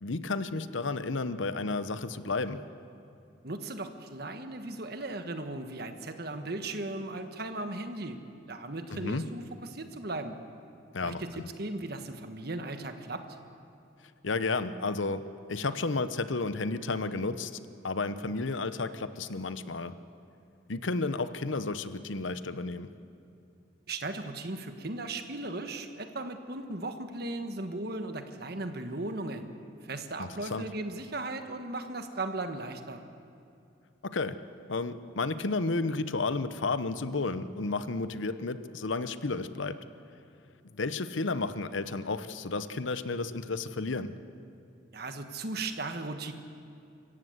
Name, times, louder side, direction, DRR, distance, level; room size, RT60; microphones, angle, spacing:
voice 1, 0.0-2.6 8.9-9.2 10.9-11.4 14.2-15.2 15.5-17.5 17.8-19.9 20.7-22.9 30.2-30.7 34.0-34.4 34.7-39.8 40.7-44.1, left 3 dB, 80° left, 12 dB, 0.9 m, -32 dB
voice 2, 3.4-8.2 8.5-10.4 11.0-13.2 23.9-29.5 29.8-33.0 44.9-46.3, right 2 dB, 55° right, 7 dB, 1.5 m, -37 dB
26.0 x 15.5 x 8.0 m, 2.6 s
head